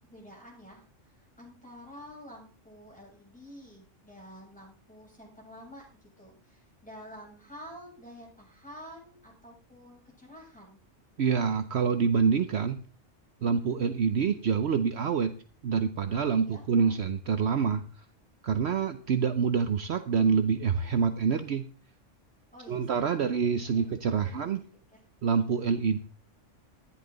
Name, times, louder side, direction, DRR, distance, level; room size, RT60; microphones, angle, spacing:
voice 1, 0.0-10.8 16.2-16.9 22.5-23.8 24.1-24.4 24.9-25.0, equal, 5° left, -3 dB, 7.5 m, -49 dB
voice 2, 11.2-12.8 13.4-15.3 15.6-17.8 18.4-21.7 22.7-24.6 25.2-26.0, right 6 dB, 60° right, 9 dB, 1.0 m, -26 dB
14.0 x 11.0 x 3.9 m, 0.40 s
omnidirectional pair, 1.3 m